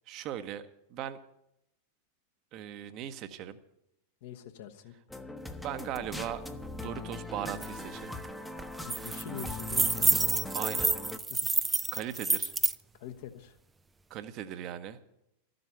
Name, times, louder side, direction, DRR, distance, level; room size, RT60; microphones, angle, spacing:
voice 1, 0.1-1.2 2.5-3.6 5.6-6.4 6.7-8.1 10.5-10.9 11.9-12.5 14.1-15.0, right 10 dB, 40° right, 11 dB, 0.9 m, -38 dB
voice 2, 4.2-4.9 8.8-10.4 11.3-11.5 13.0-13.5, left 10 dB, 50° left, 7 dB, 1.1 m, -44 dB
sound 1, 5.1-11.2, left 2 dB, 5° left, 0.9 m, -40 dB
sound 2, 7.6-7.7 8.0-8.3 8.6-12.8, right 4 dB, 10° right, 0.4 m, -29 dB
13.5 x 7.8 x 9.2 m, 0.83 s
figure-of-eight pair, 90°, 0 cm